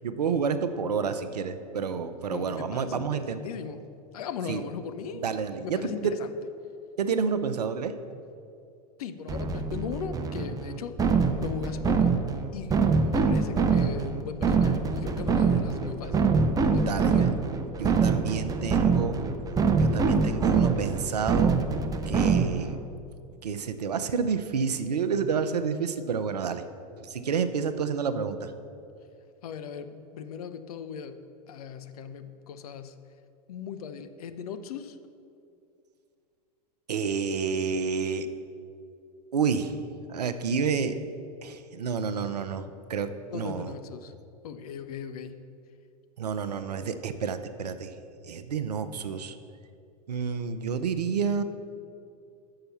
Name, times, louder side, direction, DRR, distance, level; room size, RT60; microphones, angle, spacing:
voice 1, 0.0-3.4 4.5-4.6 5.1-6.1 7.0-7.9 16.7-17.3 17.8-19.2 19.8-21.6 22.1-22.8 23.4-26.6 27.0-28.5 36.9-38.3 39.3-39.8 40.1-41.0 41.4-43.7 46.2-47.9 48.2-49.3 50.1-51.4, right 6 dB, 80° right, 11 dB, 0.5 m, -29 dB
voice 2, 2.3-3.8 4.1-5.3 5.6-6.3 9.0-11.0 11.4-12.2 12.5-12.7 13.0-16.3 16.6-17.3 29.4-31.2 31.5-32.9 33.5-35.0 43.3-44.1 44.4-45.4, left 7 dB, 65° left, 11 dB, 0.5 m, -38 dB
sound 1, 9.3-22.8, right 5 dB, 20° right, 0.5 m, -25 dB
6.8 x 5.6 x 6.8 m, 2.6 s
figure-of-eight pair, 90°, 20 cm